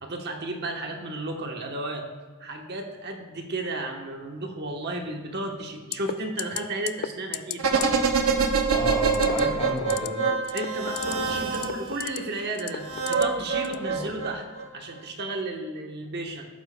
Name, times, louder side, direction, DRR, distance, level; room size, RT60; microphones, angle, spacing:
voice 1, 0.0-2.1 2.4-7.9 10.5-14.4 14.7-16.5, right 2 dB, 50° right, 3 dB, 1.1 m, -33 dB
sound 1, 5.9-6.1 6.4-6.6 6.9-7.1 7.3-7.6 7.8-7.9 9.1-9.4 9.8-10.1 10.4-11.1 11.5-12.2 12.6-13.2 13.6-13.8, left 11 dB, 50° left, 0.3 m, -32 dB
sound 2, 7.6-12.0 12.8-14.7 15.0-15.1, right 5 dB, 75° right, 0.9 m, -25 dB
voice 2, 8.7-10.3 13.7-14.2, left 1 dB, 30° left, -1 dB, 2.2 m, -32 dB
13.5 x 11.5 x 2.2 m, 1.4 s
head